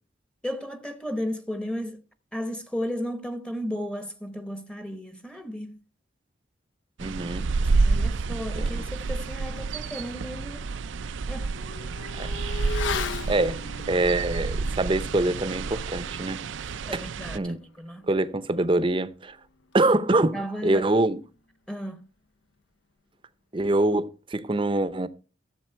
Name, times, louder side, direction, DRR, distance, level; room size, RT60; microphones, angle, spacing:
voice 1, 0.4-2.0 2.3-5.8 7.6-10.7 11.3-11.5 16.6-18.1 18.6-18.7 20.3-20.9 21.7-22.1, equal, 5° left, 0.8 m, -34 dB
voice 2, 7.0-7.5 8.6-8.8 12.2-12.3 13.3-13.6 13.9-16.4 17.3-17.6 18.1-19.4 19.7-21.2 23.5-25.1, right 2 dB, 25° right, 0.6 m, -24 dB
sound 1, 7.0-17.4, right 4 dB, 75° right, 0.5 m, -29 dB
Motorcycle / Accelerating revving vroom, 9.7-9.8 10.2-20.2 20.5-20.6, left 5 dB, 75° left, 0.6 m, -39 dB
14.0 x 7.3 x 4.5 m
head